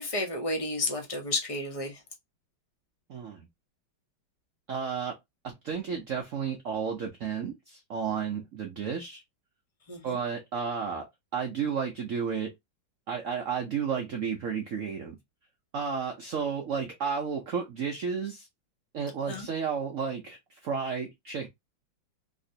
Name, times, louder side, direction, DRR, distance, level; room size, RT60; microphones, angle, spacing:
voice 1, 0.0-2.0 9.9-10.2 19.3-19.5, left 2 dB, 50° left, 0.4 m, -32 dB
voice 2, 3.1-3.5 4.7-5.2 5.4-9.2 10.0-12.5 13.1-15.2 15.7-18.5 18.9-21.5, right 6 dB, 80° right, 0.7 m, -32 dB
3.3 x 2.9 x 2.7 m
omnidirectional pair, 2.2 m